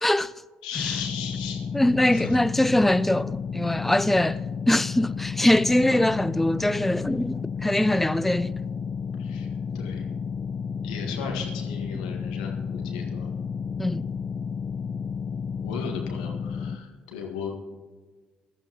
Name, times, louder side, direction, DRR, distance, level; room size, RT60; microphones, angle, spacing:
voice 1, 0.0-0.3 1.7-4.4 4.7-8.5 13.8-14.0, left 1 dB, 5° left, 0.3 m, -22 dB
voice 2, 0.6-1.6 2.1-2.4 9.2-9.5 9.7-10.1 10.8-13.3 15.6-17.6, left 6 dB, 85° left, 1.7 m, -36 dB
sound 1, 0.7-16.8, left 6 dB, 45° left, 0.9 m, -32 dB
20.5 x 13.5 x 3.0 m
hypercardioid pair, 50°, 4 cm